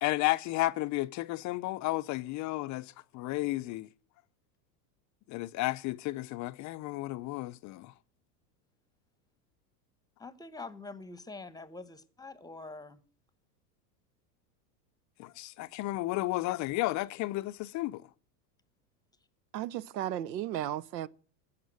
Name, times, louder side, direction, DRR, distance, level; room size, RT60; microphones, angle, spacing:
voice 1, 0.0-3.9 5.3-7.9 15.2-18.0, left 18 dB, 40° left, 0.5 m, -33 dB
voice 2, 10.2-13.0, left 3 dB, 10° left, 1.0 m, -45 dB
voice 3, 19.5-21.1, right 12 dB, 85° right, 0.8 m, -34 dB
15.5 x 5.8 x 9.3 m
hypercardioid pair, 105°, 49 cm